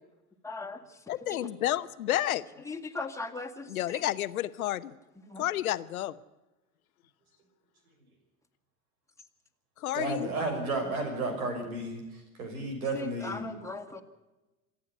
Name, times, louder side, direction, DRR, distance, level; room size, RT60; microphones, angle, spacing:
voice 1, 0.4-0.8 2.7-3.7 5.3-5.4 12.9-14.0, left 3 dB, 5° left, 2.3 m, -38 dB
voice 2, 1.1-2.4 3.7-4.9 5.4-6.1 9.8-10.3, left 13 dB, 75° left, 1.0 m, -30 dB
voice 3, 9.9-13.5, right 2 dB, 75° right, 6.2 m, -33 dB
27.0 x 9.9 x 9.7 m
hypercardioid pair, 75°, 43 cm